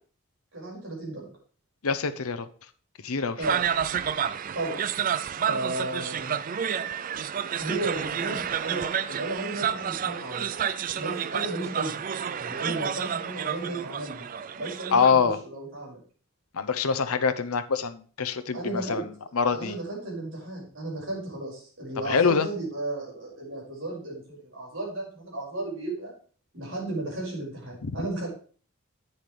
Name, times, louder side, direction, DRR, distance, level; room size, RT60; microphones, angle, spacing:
voice 1, 0.5-1.3 3.4-3.7 4.5-4.8 5.5-6.4 7.6-10.5 11.0-12.1 12.4-14.3 14.6-16.0 18.5-19.0 19.5-26.1 26.5-28.3, right 2 dB, 60° right, -3 dB, 5.4 m, -34 dB
voice 2, 1.8-2.5 3.0-3.4 14.9-15.4 16.5-19.8 22.0-22.5 27.8-27.9, left 5 dB, 90° left, 12 dB, 0.7 m, -25 dB
sound 1, 3.4-15.1, right 8 dB, 40° right, 0.3 m, -30 dB
11.0 x 9.4 x 3.3 m, 0.41 s
head